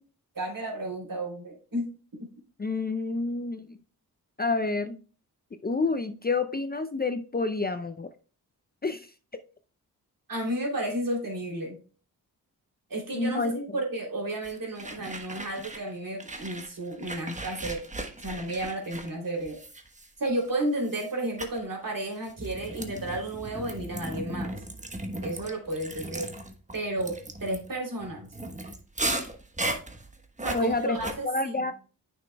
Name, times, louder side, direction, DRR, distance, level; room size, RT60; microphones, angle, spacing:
voice 1, 0.3-2.3 10.3-11.8 12.9-17.8 18.2-19.6 20.2-24.5 25.2-26.3 26.7-28.3 30.4-31.7, right 1 dB, 55° right, -1 dB, 3.1 m, -32 dB
voice 2, 2.6-3.8 4.4-5.0 5.6-8.1 8.8-9.1 13.1-13.6 30.5-31.0 31.2-31.7, left 3 dB, 25° left, 8 dB, 0.5 m, -28 dB
sound 1, 14.4-15.9 16.2-20.4 20.8-21.1 21.4-21.6 22.2-31.1, right 1 dB, 20° right, 1.1 m, -36 dB
9.2 x 6.1 x 2.3 m, 0.38 s
cardioid pair, 55°, 39 cm